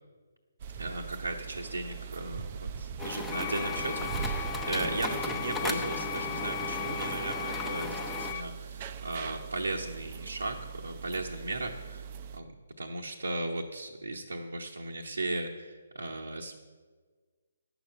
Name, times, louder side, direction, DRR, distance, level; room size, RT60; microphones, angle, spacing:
sound 1, 0.6-12.4, right 6 dB, 35° right, 0.5 m, -41 dB
voice 1, 0.8-12.1 12.3-12.5 12.8-16.5, right 2 dB, 80° right, -1 dB, 1.0 m, -36 dB
sound 2, 3.0-8.3, left 1 dB, 10° left, 0.8 m, -36 dB
sound 3, 3.3-8.4, left 12 dB, 40° left, 0.5 m, -39 dB
10.5 x 7.1 x 7.6 m, 1.5 s
figure-of-eight pair, 140°, 0 cm